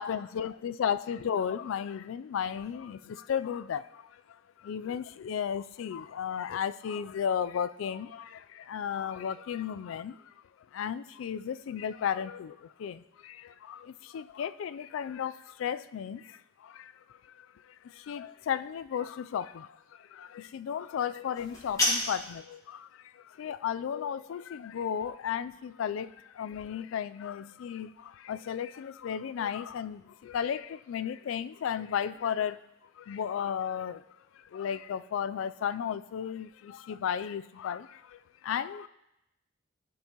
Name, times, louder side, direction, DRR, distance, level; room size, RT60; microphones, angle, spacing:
voice 1, 0.0-10.3 10.7-32.6 33.0-34.0 34.4-38.9, left 8 dB, 80° left, 14 dB, 0.3 m, -34 dB
sound 1, 21.3-22.4, left 1 dB, 15° left, 1.4 m, -29 dB
11.5 x 5.3 x 2.9 m, 0.86 s
head